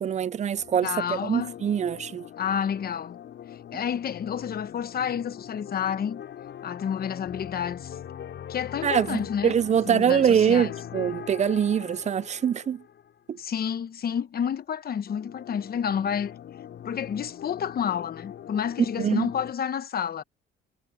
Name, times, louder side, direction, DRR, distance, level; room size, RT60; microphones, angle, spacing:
voice 1, 0.0-2.3 8.8-12.8 13.3-13.4 19.0-19.3, right 8 dB, 35° right, 0.4 m, -24 dB
sound 1, 0.6-13.1 15.1-19.5, left 9 dB, 65° left, 6.1 m, -42 dB
voice 2, 0.8-1.5 2.4-3.2 3.7-6.2 6.6-8.0 8.5-9.5 9.9-10.7 13.3-16.4 16.8-20.2, left 8 dB, 50° left, 1.0 m, -30 dB
cardioid pair, 90°, 20 cm